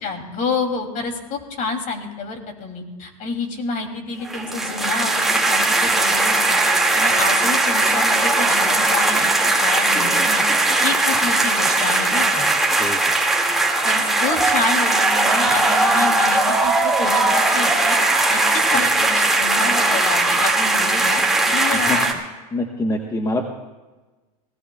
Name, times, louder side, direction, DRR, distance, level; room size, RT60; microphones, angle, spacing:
voice 1, 0.0-12.5 13.8-18.0 18.3-22.1, left 4 dB, 40° left, 4 dB, 2.8 m, -28 dB
sound 1, 4.2-22.1, right 2 dB, ahead, 2.1 m, -19 dB
voice 2, 22.5-23.5, left 2 dB, 15° left, 4 dB, 1.1 m, -24 dB
24.5 x 17.0 x 2.3 m, 1.2 s
supercardioid pair, 110°, 20 cm